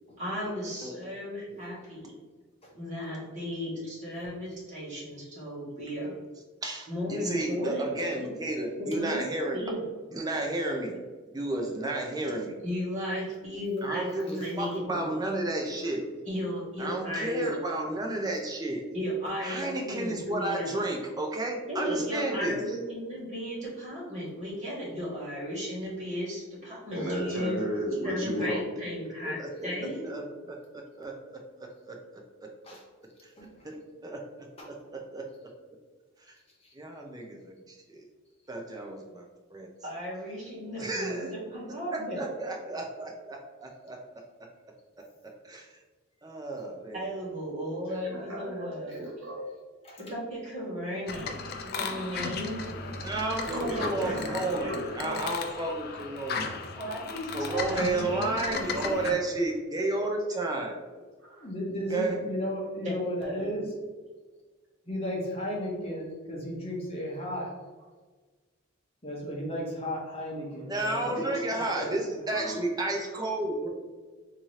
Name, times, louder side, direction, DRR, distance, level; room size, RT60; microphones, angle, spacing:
voice 1, 0.2-2.2 2.7-6.2 6.9-8.3 8.8-9.2 9.5-9.9 12.6-15.1 16.2-17.5 18.9-20.7 21.7-27.6 28.0-29.4 29.6-30.1 39.8-42.3 46.9-49.1 50.0-51.4 51.6-52.7 54.1-54.3 56.7-59.2 62.8-62.9 63.2-63.6, equal, 35° right, -8 dB, 1.5 m, -35 dB
voice 2, 6.6-9.6 10.1-10.9 11.3-12.5 13.8-16.0 16.8-18.8 19.4-22.6 28.4-28.5 29.2-29.7 30.0-30.6 31.0-31.1 31.8-32.0 33.6-33.8 34.0-34.5 34.9-35.2 36.7-38.0 38.5-39.3 39.5-39.7 40.8-41.3 41.9-44.0 45.4-45.7 46.2-47.0 53.0-56.5 57.3-60.7 61.9-62.2 70.7-73.7, right 2 dB, 20° right, 1 dB, 0.4 m, -32 dB
voice 3, 26.9-28.6 47.9-49.4 53.4-55.3 61.2-61.5 71.0-71.5 71.8-71.9 72.3-72.6, equal, 70° right, -4 dB, 1.3 m, -34 dB
sound 1, 51.1-59.1, left 4 dB, 45° left, 0.4 m, -36 dB
voice 4, 61.3-63.7 64.9-67.5 69.0-72.0, equal, 30° left, -3 dB, 0.9 m, -34 dB
3.6 x 2.8 x 3.1 m, 1.4 s
head